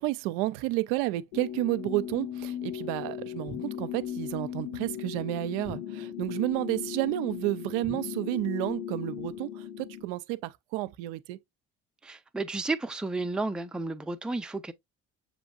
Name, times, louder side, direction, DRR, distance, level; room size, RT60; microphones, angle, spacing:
voice 1, 0.0-9.5 9.8-11.4, right 18 dB, 75° right, 0.5 m, -31 dB
sound 1, 1.3-10.0, left 10 dB, 75° left, 1.5 m, -37 dB
voice 2, 12.0-14.7, right 3 dB, ahead, 0.5 m, -32 dB
6.9 x 3.0 x 2.5 m
hypercardioid pair, 55°, 36 cm